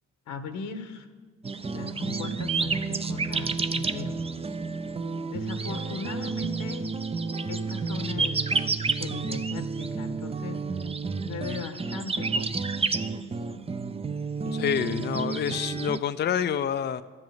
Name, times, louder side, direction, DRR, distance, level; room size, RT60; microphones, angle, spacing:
voice 1, 0.3-1.1 1.7-4.2 5.3-6.9 7.5-8.6 8.9-10.6 11.2-12.7 14.4-15.1, left 5 dB, 85° left, 8 dB, 1.4 m, -38 dB
sound 1, 1.4-16.0, right 4 dB, 20° right, 0.6 m, -30 dB
voice 2, 14.5-17.0, left 8 dB, 35° left, 10 dB, 0.5 m, -27 dB
12.5 x 7.8 x 9.2 m, 1.5 s
cardioid pair, 90°, 30 cm